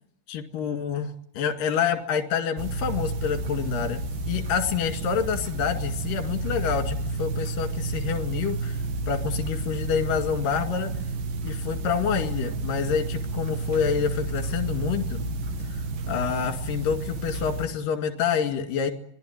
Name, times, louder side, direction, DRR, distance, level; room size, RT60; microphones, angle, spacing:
voice 1, 0.3-4.0 4.3-8.8 9.1-10.9 11.4-15.2 16.1-18.9, left 7 dB, 55° left, 6 dB, 3.4 m, -27 dB
sound 1, 2.6-17.7, right 2 dB, 60° right, 2.8 m, -31 dB
25.5 x 20.0 x 9.6 m, 0.70 s
omnidirectional pair, 5.4 m